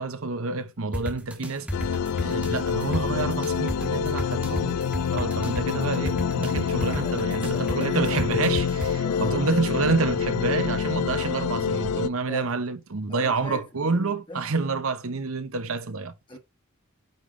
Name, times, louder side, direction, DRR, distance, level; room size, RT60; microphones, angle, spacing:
voice 1, 0.0-1.9 2.2-4.8 5.1-16.1, right 3 dB, 65° right, 0.9 m, -28 dB
sound 1, 0.9-8.9, equal, 5° right, 1.2 m, -33 dB
sound 2, 1.7-12.1, left 7 dB, 80° left, 0.4 m, -27 dB
voice 2, 6.8-8.0 9.0-9.4 12.2-12.5 13.1-14.4 16.3-16.4, left 1 dB, 20° left, 1.2 m, -39 dB
9.2 x 3.5 x 3.8 m
head